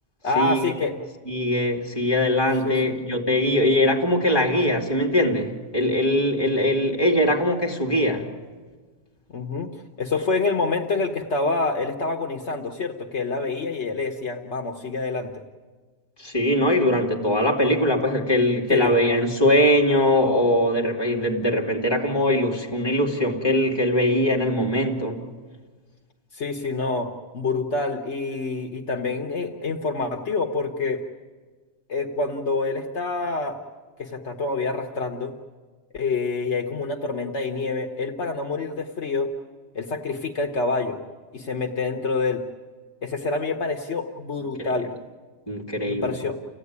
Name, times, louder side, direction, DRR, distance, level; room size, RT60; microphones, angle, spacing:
voice 1, 0.2-1.0 2.6-3.0 9.3-9.7 10.0-15.4 18.7-19.0 26.3-31.0 31.9-33.6 34.0-35.3 35.9-39.3 39.7-41.0 41.3-42.4 43.0-44.9 45.9-46.4, left 3 dB, 65° left, 3 dB, 1.5 m, -27 dB
voice 2, 1.3-8.3 16.2-25.2 44.6-44.7 45.5-46.1, left 1 dB, 20° left, -1 dB, 2.8 m, -21 dB
30.0 x 16.0 x 9.7 m, 1.4 s
omnidirectional pair, 1.3 m